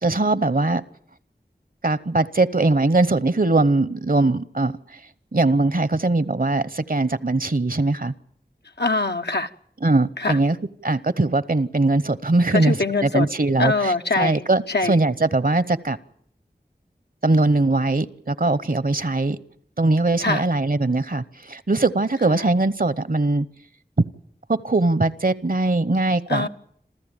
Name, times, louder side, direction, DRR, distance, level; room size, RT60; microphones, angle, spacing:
voice 1, 0.0-0.8 1.8-4.7 5.3-8.1 9.8-10.6 10.8-12.8 13.0-16.0 17.2-19.4 19.8-23.5 24.0-24.1 24.5-26.5, right 2 dB, 55° right, 0.9 m, -21 dB
voice 2, 8.8-9.5 10.2-10.4 12.5-13.3 13.6-14.4 14.7-15.0 20.2-20.4 22.3-22.5 26.3-26.5, left 3 dB, 85° left, 1.0 m, -23 dB
27.5 x 14.0 x 8.9 m
wide cardioid pair, 45°, 17 cm